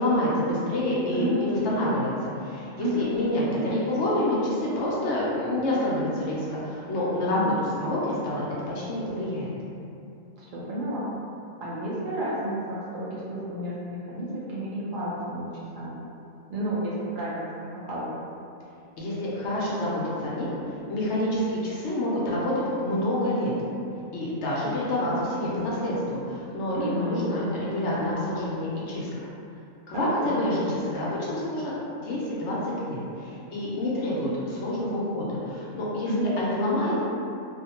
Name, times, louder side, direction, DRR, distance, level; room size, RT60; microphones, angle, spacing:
voice 1, 0.0-8.4 8.7-9.5 19.0-20.5 20.9-22.5 22.8-23.5 24.1-29.3 29.9-37.0, left 1 dB, 65° left, -6 dB, 0.8 m, -27 dB
voice 2, 1.1-1.6 2.8-3.0 3.7-3.8 7.3-7.5 10.4-11.1 11.6-15.5 15.8-16.0 16.5-18.1 26.7-27.2 29.9-30.4 36.0-36.3, right 1 dB, 85° right, -8 dB, 0.4 m, -31 dB
2.5 x 2.1 x 2.8 m, 2.6 s
omnidirectional pair, 1.4 m